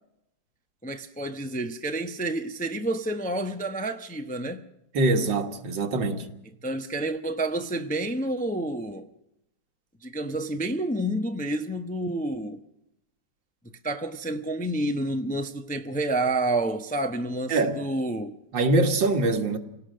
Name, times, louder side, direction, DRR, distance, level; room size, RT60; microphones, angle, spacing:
voice 1, 0.8-4.6 6.6-9.1 10.0-12.6 13.8-18.4, right 1 dB, 10° left, 0.5 m, -29 dB
voice 2, 4.9-6.3 17.5-17.8 18.5-19.6, right 2 dB, 85° right, 2.3 m, -23 dB
28.0 x 18.0 x 6.5 m
omnidirectional pair, 2.0 m